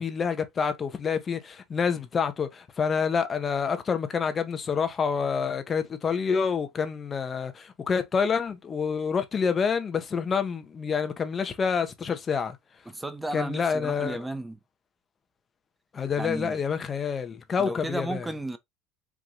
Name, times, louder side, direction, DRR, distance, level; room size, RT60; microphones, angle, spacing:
voice 1, 0.0-12.6 13.3-14.2 15.9-18.3, left 6 dB, 30° left, 1.0 m, -27 dB
voice 2, 12.9-14.6 16.2-16.6 17.6-18.6, right 1 dB, 10° right, 0.9 m, -34 dB
4.7 x 2.6 x 3.9 m
hypercardioid pair, 85°, 0 cm